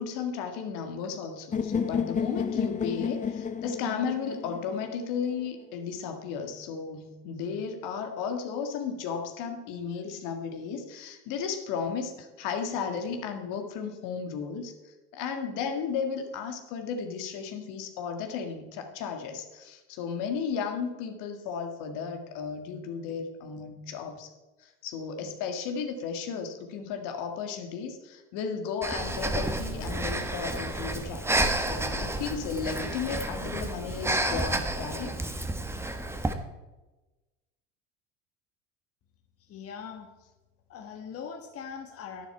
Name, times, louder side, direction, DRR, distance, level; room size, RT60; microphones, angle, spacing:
voice 1, 0.0-24.3 24.6-31.3 31.5-35.1, left 6 dB, 60° left, 6 dB, 1.9 m, -34 dB
sound 1, 1.5-5.5, left 6 dB, 20° left, 0.8 m, -31 dB
Breathing, 28.8-36.3, right 1 dB, 5° right, 1.3 m, -30 dB
voice 2, 39.4-40.1 40.7-42.3, left 6 dB, 40° left, 4 dB, 1.4 m, -41 dB
11.0 x 10.5 x 4.5 m, 1.1 s
hypercardioid pair, 75°, 36 cm